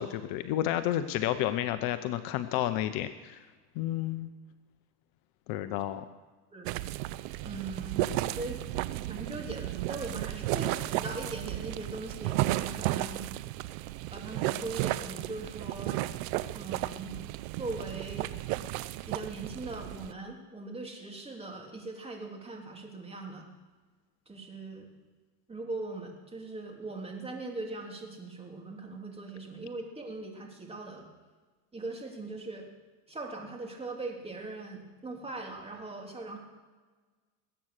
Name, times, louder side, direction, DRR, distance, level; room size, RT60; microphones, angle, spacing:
voice 1, 0.0-3.4 3.8-4.3 5.5-6.0, left 12 dB, 50° left, 11 dB, 0.9 m, -31 dB
sound 1, 6.6-20.1, right 16 dB, 55° right, 0.8 m, -34 dB
voice 2, 7.4-8.8 9.1-13.3 14.1-16.1 16.5-17.2 17.5-18.3 19.1-23.5 24.3-24.9 25.5-31.1 31.7-32.6 33.1-36.4, right 2 dB, 10° right, 0 dB, 3.1 m, -40 dB
20.5 x 8.9 x 6.6 m, 1.4 s
hypercardioid pair, 110°, 48 cm